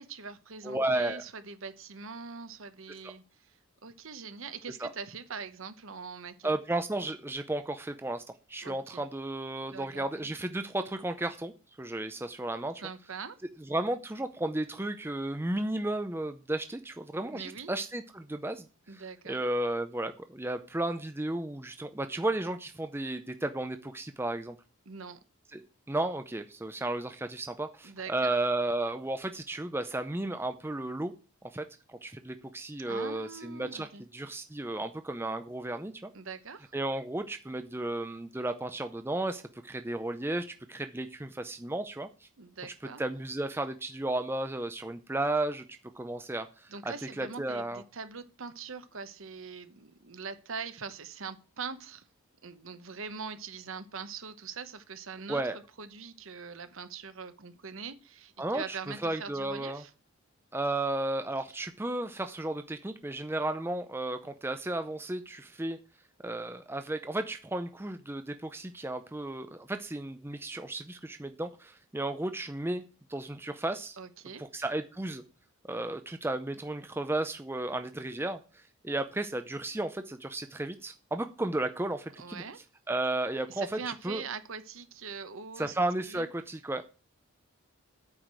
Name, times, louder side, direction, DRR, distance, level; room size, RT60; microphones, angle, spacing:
voice 1, 0.0-6.5 8.6-9.0 9.7-10.3 12.8-13.4 17.3-17.7 18.9-19.4 24.9-25.2 27.8-28.4 32.9-34.0 36.1-36.7 42.4-43.0 46.7-52.1 52.4-55.4 55.8-59.9 74.0-74.4 82.2-82.6 83.5-85.7 86.0-86.3, right 5 dB, 65° right, 11 dB, 1.0 m, -42 dB
voice 2, 0.6-1.2 4.8-4.9 6.4-8.2 8.5-11.5 11.8-12.8 13.7-18.7 18.9-19.0 19.3-24.6 25.5-31.1 31.5-36.1 36.7-42.3 42.6-42.7 43.0-45.7 46.0-47.8 55.3-55.6 58.4-58.8 59.0-59.8 60.5-65.8 66.2-72.8 73.1-74.0 74.4-75.2 75.7-82.4 82.9-83.8 84.0-84.2 85.6-86.8, right 2 dB, 10° right, 8 dB, 0.5 m, -33 dB
8.8 x 4.9 x 7.6 m, 0.35 s
head